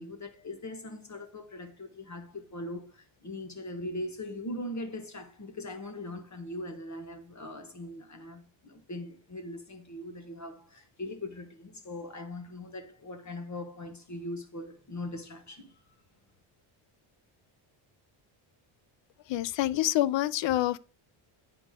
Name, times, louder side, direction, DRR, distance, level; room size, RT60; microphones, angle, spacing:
voice 1, 0.0-15.8, left 1 dB, 35° left, 1.2 m, -40 dB
voice 2, 19.3-20.8, left 14 dB, 60° left, 0.5 m, -27 dB
8.4 x 5.0 x 3.7 m
cardioid pair, 95°, 50 cm